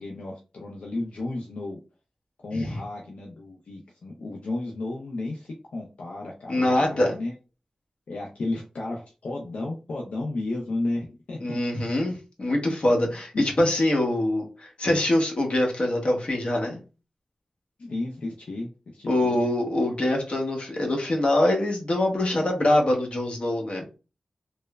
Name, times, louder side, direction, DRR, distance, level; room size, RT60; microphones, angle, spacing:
voice 1, 0.0-1.8 2.4-7.3 8.1-11.6 13.3-13.4 17.8-19.4, left 2 dB, 80° left, -1 dB, 0.4 m, -33 dB
voice 2, 6.5-7.2 11.4-16.8 19.1-23.8, left 1 dB, 60° left, 1 dB, 0.9 m, -24 dB
3.0 x 2.0 x 2.2 m, 0.32 s
cardioid pair, 50°, 2 cm